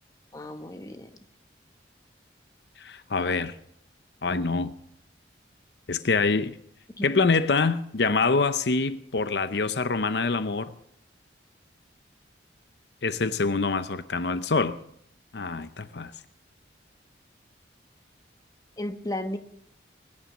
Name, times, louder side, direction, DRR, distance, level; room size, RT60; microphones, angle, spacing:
voice 1, 0.3-1.2 7.0-7.2 18.8-19.4, left 1 dB, 20° left, 1.1 m, -34 dB
voice 2, 2.8-3.5 4.2-4.7 5.9-6.6 7.0-10.7 13.0-14.8 15.3-16.1, left 4 dB, 65° left, 0.7 m, -25 dB
21.5 x 10.5 x 6.1 m
head